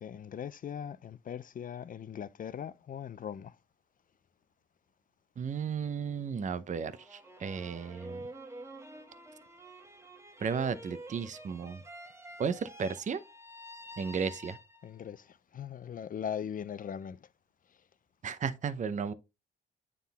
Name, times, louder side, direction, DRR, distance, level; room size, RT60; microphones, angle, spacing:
voice 1, 0.0-3.6 14.8-17.3, left 8 dB, 45° left, 0.5 m, -40 dB
voice 2, 5.4-8.2 10.4-11.8 12.4-13.2 14.0-14.6 18.2-19.1, right 6 dB, 40° right, 0.7 m, -34 dB
sound 1, 6.8-15.0, right 1 dB, 15° right, 1.2 m, -48 dB
9.4 x 3.7 x 4.1 m
cardioid pair, 90°, 20 cm